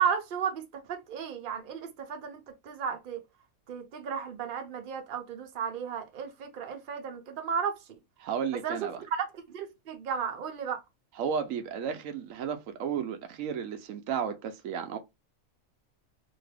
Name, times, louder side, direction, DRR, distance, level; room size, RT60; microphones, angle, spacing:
voice 1, 0.0-3.2 3.7-7.8 8.6-8.8 9.1-10.8, right 7 dB, 50° right, 0.8 m, -33 dB
voice 2, 8.2-9.0 11.1-15.0, right 7 dB, 90° right, 1.0 m, -33 dB
2.9 x 2.6 x 3.2 m
omnidirectional pair, 1.4 m